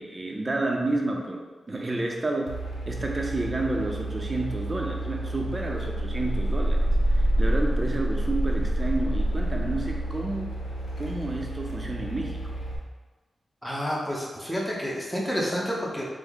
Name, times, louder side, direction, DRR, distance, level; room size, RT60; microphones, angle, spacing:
voice 1, 0.0-2.6 2.9-10.5 11.0-12.5, right 2 dB, 35° right, 1 dB, 0.5 m, -30 dB
sound 1, 2.5-12.8, right 1 dB, 90° left, 0.5 m, -28 dB
voice 2, 13.6-16.0, equal, 5° left, -5 dB, 0.7 m, -29 dB
3.5 x 2.0 x 3.5 m, 1.3 s
cardioid pair, 65°, 0 cm